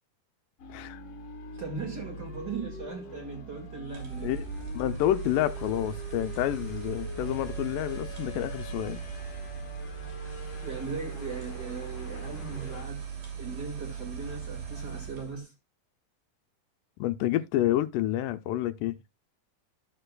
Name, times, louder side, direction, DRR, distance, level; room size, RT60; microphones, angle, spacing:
sound 1, 0.6-12.9, left 2 dB, 50° left, 2.2 m, -44 dB
voice 1, 0.7-1.0 4.2-4.5 4.7-9.0 17.0-19.0, left 13 dB, 85° left, 2.2 m, -29 dB
voice 2, 1.5-4.3 9.8-9.9 10.2-10.3 10.6-13.1 13.4-15.5, right 5 dB, 35° right, 2.0 m, -38 dB
sound 2, 3.9-15.4, right 7 dB, 70° right, 4.4 m, -39 dB
13.5 x 6.6 x 2.2 m
omnidirectional pair, 3.8 m